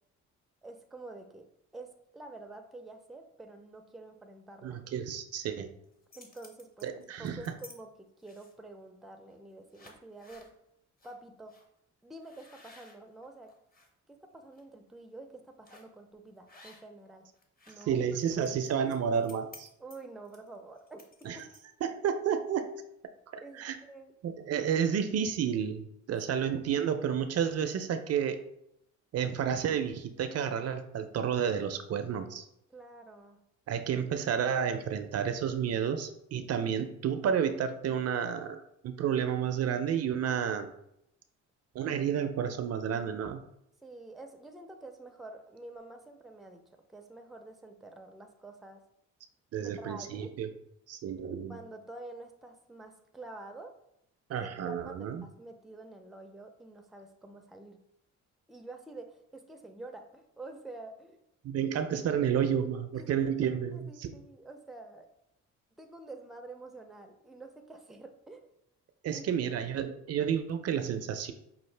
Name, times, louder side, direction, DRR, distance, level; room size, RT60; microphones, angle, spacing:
voice 1, 0.6-4.8 6.1-6.9 7.2-10.5 11.0-11.6 12.0-13.5 14.1-17.3 17.7-18.0 19.8-21.5 23.4-24.1 26.3-26.5 32.7-33.4 43.8-46.6 46.9-48.8 49.6-50.4 51.5-53.7 54.4-57.8 58.5-61.2 62.9-65.1 65.8-68.5 69.1-69.4, right 2 dB, ahead, 5 dB, 0.5 m, -48 dB
voice 2, 4.6-5.7 6.8-7.4 17.9-19.7 21.3-21.4 21.8-22.7 23.3-23.8 24.2-28.4 29.1-32.5 33.7-40.7 41.7-43.4 49.5-50.5 50.9-51.6 54.3-55.2 61.4-64.1 69.0-71.3, right 8 dB, 55° right, 9 dB, 0.5 m, -31 dB
sound 1, 5.8-7.8 8.2-8.7 9.3-9.4 9.7-10.5 11.0-11.1 11.5-11.7 12.2-13.9 14.3-14.6 15.7-16.0 16.5-17.1 17.3-21.8, left 3 dB, 30° left, 0.9 m, -56 dB
5.5 x 2.4 x 3.2 m, 0.77 s
cardioid pair, 90°, 30 cm